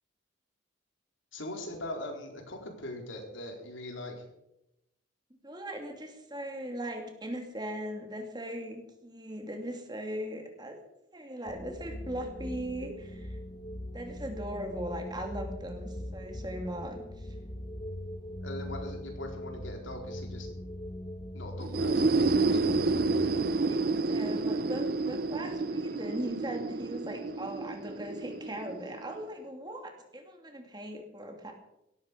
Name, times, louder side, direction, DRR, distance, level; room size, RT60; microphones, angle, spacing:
voice 1, 1.3-4.2 18.4-20.5 21.3-22.6, left 1 dB, 80° left, 2 dB, 4.1 m, -41 dB
voice 2, 5.4-10.8 11.1-13.4 13.9-17.3 23.7-31.5, right 1 dB, 20° right, 3 dB, 2.5 m, -39 dB
sound 1, 11.5-23.6, left 1 dB, 25° left, 1.0 m, -41 dB
sound 2, 21.6-29.2, right 3 dB, 50° right, 0.5 m, -29 dB
17.0 x 14.0 x 5.2 m, 0.85 s
head